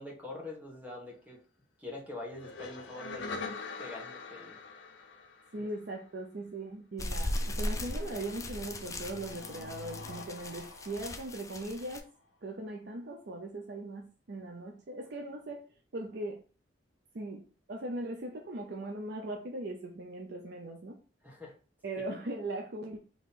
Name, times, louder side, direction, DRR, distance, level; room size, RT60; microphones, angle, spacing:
voice 1, 0.0-1.4 1.8-3.4 3.8-4.6 5.6-5.7 21.2-21.5, left 2 dB, 10° right, -1 dB, 1.2 m, -44 dB
sound 1, 2.3-6.0 7.3-12.0, left 3 dB, 80° left, 0.6 m, -45 dB
voice 2, 5.5-12.1 12.4-16.4 17.1-21.0 21.8-23.0, right 2 dB, 60° right, 2 dB, 0.5 m, -39 dB
Paper in Wind, 7.0-12.0, left 1 dB, 15° left, 0.4 m, -38 dB
3.7 x 3.0 x 4.0 m, 0.38 s
head